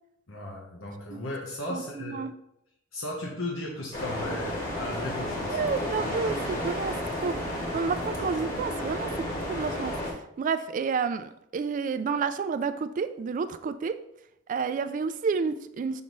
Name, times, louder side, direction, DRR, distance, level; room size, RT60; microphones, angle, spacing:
voice 1, 0.3-2.2 2.9-5.6, left 1 dB, 90° left, -2 dB, 1.1 m, -36 dB
voice 2, 1.7-2.3 5.5-9.1 9.5-14.0 14.5-16.0, right 5 dB, 40° right, 10 dB, 0.3 m, -30 dB
sound 1, 3.9-10.1, left 1 dB, 45° left, 1.7 m, -32 dB
5.9 x 5.4 x 3.1 m, 0.78 s
head